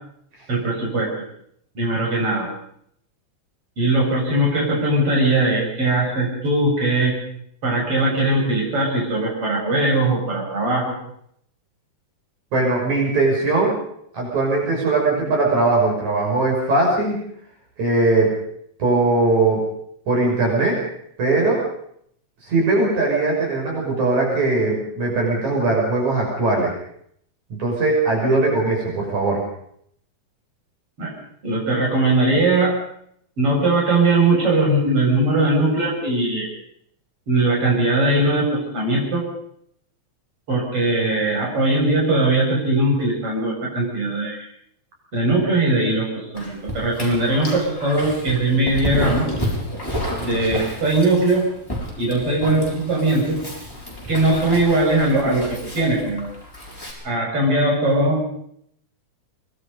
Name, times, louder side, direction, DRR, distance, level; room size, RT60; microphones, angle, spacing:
voice 1, 0.5-1.1 1.8-2.5 3.8-7.1 7.6-10.9 31.0-31.1 31.4-32.8 33.4-36.5 37.3-39.2 40.5-44.4 45.1-49.3 50.2-51.5 52.0-53.4 54.1-56.3 57.0-58.2, right 2 dB, 45° right, -2 dB, 8.1 m, -20 dB
voice 2, 12.5-13.8 14.1-17.2 17.8-18.3 18.8-19.7 20.1-20.8 21.2-21.6 22.5-26.7 27.6-29.4, right 2 dB, 70° right, -2 dB, 7.6 m, -20 dB
Dog, 46.4-56.9, equal, 5° left, 6.8 m, -31 dB
25.0 x 21.0 x 5.4 m, 0.68 s
omnidirectional pair, 3.4 m